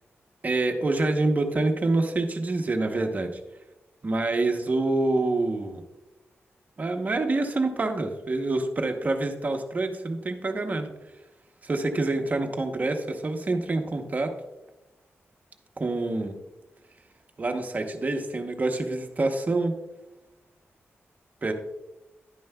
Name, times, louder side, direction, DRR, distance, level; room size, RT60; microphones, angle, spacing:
voice 1, 0.4-3.4 4.0-5.8 6.8-10.9 11.6-14.3 15.8-16.4 17.4-19.7 21.4-21.5, right 2 dB, 35° right, 5 dB, 0.8 m, -26 dB
11.5 x 9.2 x 2.2 m, 1.0 s
wide cardioid pair, 120°, 5 cm